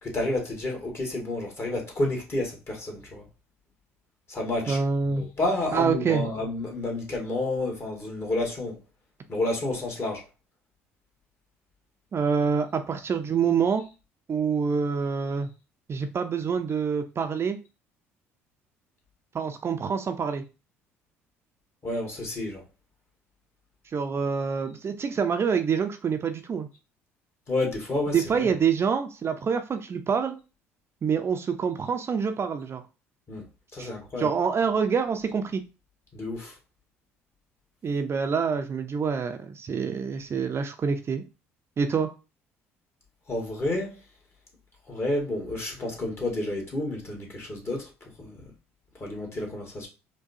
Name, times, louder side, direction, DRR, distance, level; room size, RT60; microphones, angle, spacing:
voice 1, 0.0-3.2 4.3-8.8 9.3-10.2 21.8-22.6 27.5-28.5 33.3-33.4 33.7-34.3 36.1-36.6 43.3-44.0 44.9-47.9 48.2-48.4 49.0-49.9, left 2 dB, 35° left, 1.8 m, -30 dB
voice 2, 4.7-5.2 5.7-6.3 12.1-13.8 14.3-15.5 15.9-17.6 19.3-20.4 23.9-26.7 28.1-30.4 31.0-32.8 33.8-33.9 34.2-35.6 37.8-41.2 41.8-42.1, right 6 dB, 35° right, 0.5 m, -26 dB
4.7 x 2.2 x 2.7 m
hypercardioid pair, 60°, 7 cm